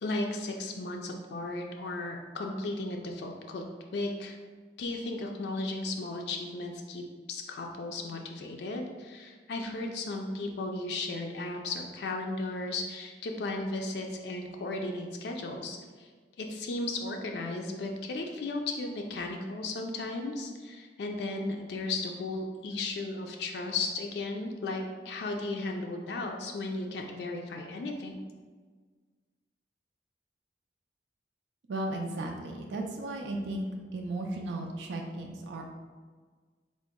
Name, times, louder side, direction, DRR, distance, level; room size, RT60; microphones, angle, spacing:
voice 1, 0.0-3.6 3.9-4.4 4.8-7.0 7.3-16.1 16.4-28.2, left 2 dB, 75° left, 2 dB, 0.3 m, -35 dB
voice 2, 31.7-33.7 33.9-35.6, right 2 dB, 90° right, 1 dB, 0.4 m, -35 dB
3.8 x 2.0 x 3.5 m, 1.5 s
head